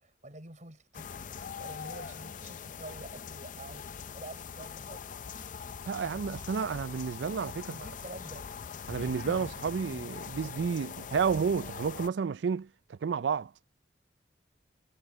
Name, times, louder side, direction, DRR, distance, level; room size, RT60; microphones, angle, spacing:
voice 1, 0.0-3.9 4.1-5.3 7.6-8.5, right 1 dB, 45° right, 6.0 m, -48 dB
sound 1, 0.9-12.1, left 6 dB, 45° left, 0.5 m, -42 dB
voice 2, 5.9-7.7 8.9-13.5, right 6 dB, 75° right, 0.4 m, -31 dB
head